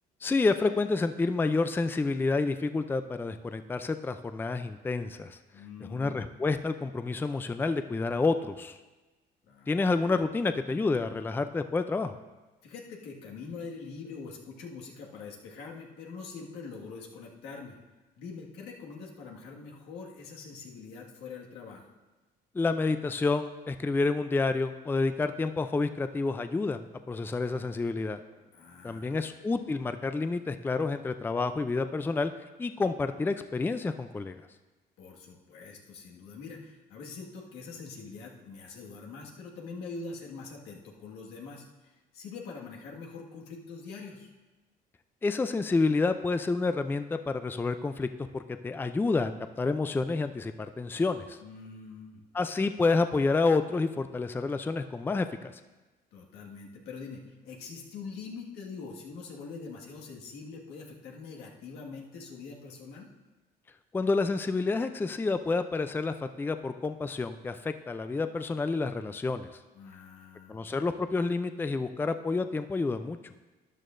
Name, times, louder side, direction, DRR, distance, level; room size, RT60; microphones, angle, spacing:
voice 1, 0.2-5.4 5.9-8.8 9.7-12.1 22.5-28.2 28.8-32.3 32.6-34.4 45.2-48.1 48.3-49.3 49.6-51.4 52.3-55.5 63.9-69.5 70.5-73.2, left 3 dB, 10° left, 10 dB, 0.4 m, -29 dB
voice 2, 5.5-6.3 9.5-9.8 12.6-17.8 18.2-21.8 28.5-29.3 35.0-44.3 51.4-52.2 56.1-63.1 69.7-70.6, left 4 dB, 90° left, -2 dB, 1.8 m, -44 dB
13.0 x 10.5 x 2.6 m, 1.1 s
cardioid pair, 110°, 17 cm